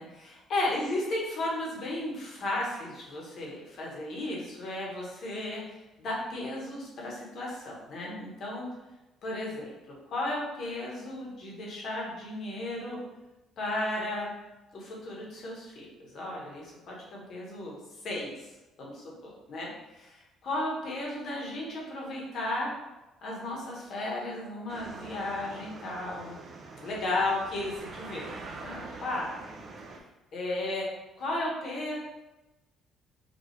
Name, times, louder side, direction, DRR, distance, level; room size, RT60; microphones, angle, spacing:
voice 1, 0.0-5.6 6.0-8.7 9.2-9.7 10.1-13.0 13.6-14.3 14.7-15.9 16.1-17.8 18.0-18.3 18.8-19.0 19.5-19.7 19.9-22.7 23.2-26.4 26.8-28.3 28.6-29.3 30.3-30.8 31.2-32.0, left 1 dB, 45° left, -3 dB, 1.3 m, -34 dB
sound 1, 24.7-30.0, right 3 dB, 35° right, 0.6 m, -44 dB
5.2 x 2.7 x 3.2 m, 1.0 s
cardioid pair, 165°, 0 cm